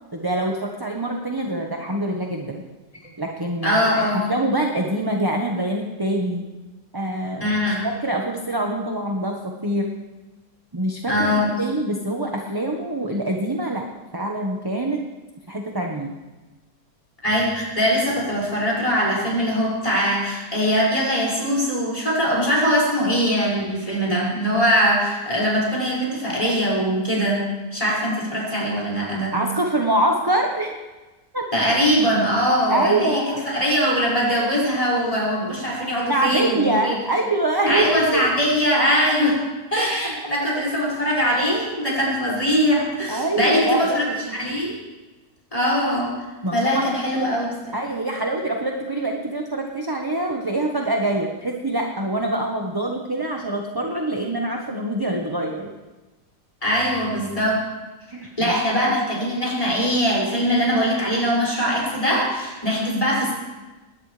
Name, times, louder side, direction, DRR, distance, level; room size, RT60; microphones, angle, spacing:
voice 1, 0.1-2.6 3.2-3.9 4.1-6.4 6.9-7.5 7.8-9.9 10.7-13.8 14.1-15.0 15.5-16.1 29.3-30.7 31.3-31.7 32.7-33.4 34.3-34.4 36.1-38.2 43.1-44.0 44.3-44.5 46.4-46.9 47.7-55.7 58.1-58.6, right 1 dB, 15° right, 1 dB, 1.2 m, -25 dB
voice 2, 3.6-4.3 7.4-7.9 11.1-11.5 17.2-27.4 27.7-29.3 31.5-33.2 33.4-36.9 37.7-39.4 39.7-44.7 45.5-46.1 46.5-47.7 56.6-57.6 58.4-63.3, equal, 20° left, -5 dB, 6.5 m, -21 dB
21.0 x 18.5 x 3.4 m, 1.2 s
omnidirectional pair, 1.7 m